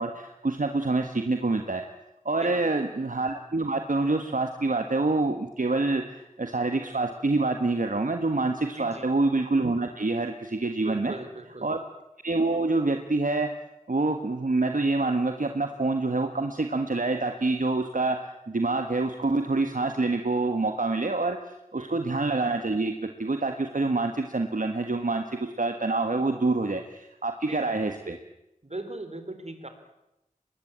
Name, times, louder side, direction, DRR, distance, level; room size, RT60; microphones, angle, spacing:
voice 1, 0.0-1.8 2.2-11.1 11.6-11.8 12.2-13.5 13.9-21.4 21.7-28.2, right 3 dB, 75° right, 5 dB, 1.6 m, -26 dB
voice 2, 8.8-9.1 10.8-11.7 21.7-22.0 27.5-27.9 28.6-29.7, right 2 dB, 50° right, 8 dB, 3.8 m, -39 dB
24.0 x 20.5 x 8.8 m, 0.90 s
wide cardioid pair, 45°, 14 cm